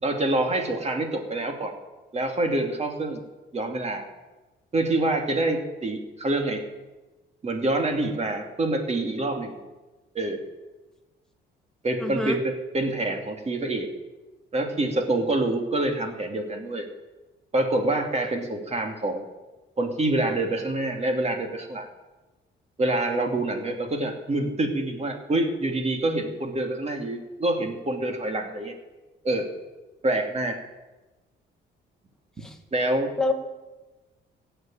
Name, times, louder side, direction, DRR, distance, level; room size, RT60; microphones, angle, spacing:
voice 1, 0.0-1.7 2.1-3.2 3.5-4.1 4.7-6.6 7.4-9.6 10.1-10.4 11.8-13.9 14.5-16.9 17.5-19.2 19.8-21.9 22.8-28.7 29.2-29.5 30.0-30.6 32.7-33.1, right 2 dB, 35° right, 4 dB, 2.7 m, -26 dB
voice 2, 12.0-12.4 32.4-32.6 33.2-33.3, left 2 dB, 5° left, 3 dB, 2.3 m, -26 dB
16.0 x 6.9 x 9.0 m, 1.1 s
cardioid pair, 90°, 20 cm